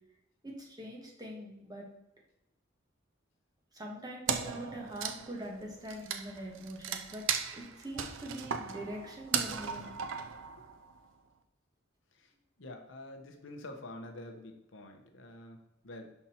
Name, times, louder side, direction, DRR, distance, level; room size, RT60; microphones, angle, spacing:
voice 1, 0.4-1.9 3.7-7.2 7.5-9.9, right 1 dB, 20° right, -1 dB, 1.4 m, -43 dB
Wood, 4.3-11.0, right 7 dB, 75° right, 0.5 m, -37 dB
voice 2, 12.6-16.1, left 1 dB, 65° left, 4 dB, 0.9 m, -47 dB
5.6 x 4.4 x 4.3 m, 0.90 s
head